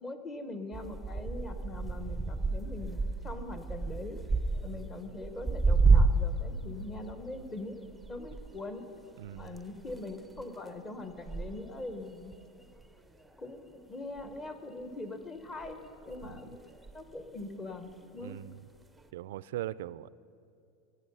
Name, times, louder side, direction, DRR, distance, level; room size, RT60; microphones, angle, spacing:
voice 1, 0.0-4.2 4.6-7.8 8.1-8.9 9.4-12.3 13.4-16.6 16.9-18.4, left 2 dB, 25° left, 8 dB, 1.1 m, -42 dB
sound 1, 0.7-6.5 6.8-13.9 14.2-14.9 15.6-17.5 17.9-18.3 19.0-19.1, right 3 dB, 5° right, 0.6 m, -31 dB
voice 2, 9.2-9.5 16.2-16.4 18.2-18.6 19.1-20.1, right 13 dB, 80° right, 19 dB, 0.3 m, -40 dB
16.0 x 9.7 x 5.5 m, 2.5 s
supercardioid pair, 135°, 0 cm